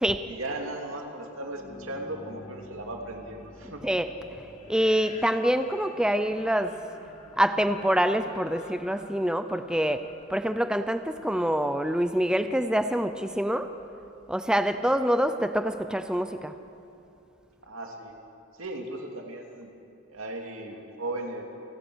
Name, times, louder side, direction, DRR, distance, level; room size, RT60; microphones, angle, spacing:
voice 1, 0.2-3.8 17.6-18.1 18.6-19.7 20.1-21.4, right 1 dB, 80° right, 2 dB, 2.8 m, -37 dB
sound 1, 1.4-11.2, left 2 dB, 30° left, 2.0 m, -49 dB
voice 2, 4.7-6.7 7.4-10.0 10.3-13.7 14.3-16.5, equal, 5° right, 9 dB, 0.6 m, -25 dB
28.5 x 16.5 x 6.4 m, 2.7 s
head